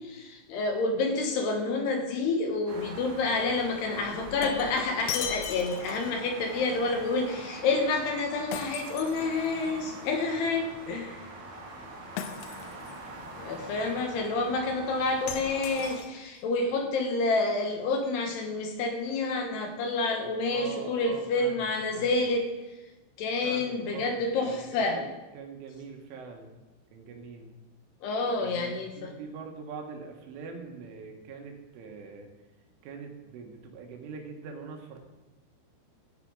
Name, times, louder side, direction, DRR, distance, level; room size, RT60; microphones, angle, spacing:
voice 1, 0.1-11.2 13.4-22.5 23.2-25.0 28.0-29.1, left 3 dB, 70° left, 3 dB, 3.0 m, -29 dB
sound 1, 2.7-16.0, right 2 dB, 45° right, 3.8 m, -43 dB
Shatter, 4.0-6.3 8.5-9.8 12.2-13.0 15.3-16.4, left 9 dB, 85° left, 2.3 m, -37 dB
voice 2, 20.4-22.2 23.4-26.5 26.9-27.5 28.4-32.3 32.8-35.0, right 5 dB, 90° right, 3 dB, 4.0 m, -43 dB
13.5 x 9.2 x 4.8 m, 1.1 s
omnidirectional pair, 5.4 m